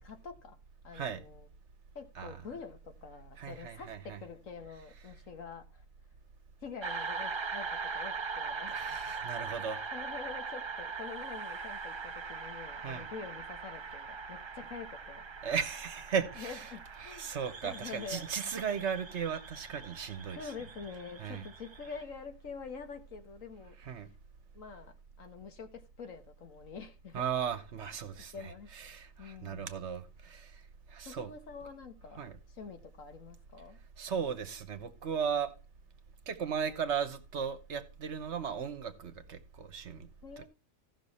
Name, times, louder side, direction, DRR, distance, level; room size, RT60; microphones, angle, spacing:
voice 1, 0.0-0.6 0.8-1.5 1.9-5.8 6.6-8.7 9.9-15.3 16.4-17.3 17.6-18.3 20.3-23.8 24.5-27.3 28.3-28.7 29.2-29.7 31.0-33.8 40.2-40.4, left 5 dB, 75° left, 1.7 m, -46 dB
voice 2, 3.4-4.2 8.7-9.8 12.8-13.1 15.4-16.6 17.0-20.4 21.2-21.5 23.9-24.1 27.1-28.3 28.8-30.6 30.9-31.3 32.2-32.3 34.0-35.5 36.3-40.1 40.4-40.5, right 7 dB, 60° right, 1.2 m, -36 dB
sound 1, 6.8-22.0, right 5 dB, 40° right, 0.4 m, -41 dB
15.5 x 6.1 x 4.2 m
omnidirectional pair, 1.4 m